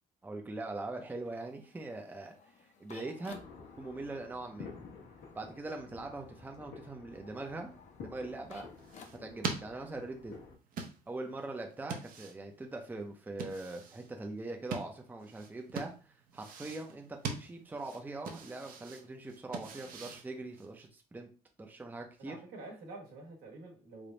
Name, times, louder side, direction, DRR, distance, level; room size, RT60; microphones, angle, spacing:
voice 1, 0.2-3.4 3.8-4.7 5.3-7.7 8.0-8.7 9.2-10.4 11.1-21.3 21.6-22.4, right 2 dB, 10° right, 3 dB, 0.6 m, -42 dB
sound 1, 0.8-9.6, left 5 dB, 45° left, 0.7 m, -58 dB
sound 2, 3.3-10.6, left 5 dB, 90° left, 1.1 m, -51 dB
sound 3, 8.6-20.9, right 5 dB, 55° right, 0.8 m, -44 dB
voice 2, 22.2-24.1, right 2 dB, 75° right, 0 dB, 1.5 m, -48 dB
3.4 x 2.2 x 3.9 m, 0.35 s
cardioid pair, 110°, 17 cm